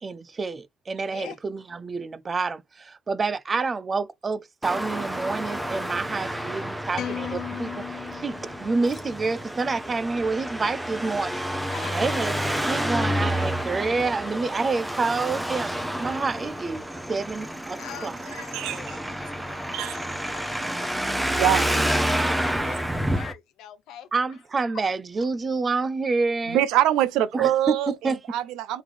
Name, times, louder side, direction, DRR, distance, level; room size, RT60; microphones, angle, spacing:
voice 1, 0.0-11.4 11.8-12.4 12.7-15.7 16.0-18.1 24.1-26.6 27.3-28.2, right 4 dB, 25° right, 0.4 m, -28 dB
Traffic noise roadway noise, 4.6-23.3, equal, 5° right, 0.8 m, -29 dB
sound 1, 6.9-9.3, left 10 dB, 55° left, 0.4 m, -36 dB
voice 2, 11.7-12.2 16.3-16.5 17.8-21.4 21.7-24.1 24.7-24.8, left 10 dB, 75° left, 0.9 m, -43 dB
voice 3, 21.4-21.9 26.5-28.8, right 12 dB, 90° right, 0.6 m, -24 dB
3.6 x 3.1 x 3.3 m
cardioid pair, 125°, 0 cm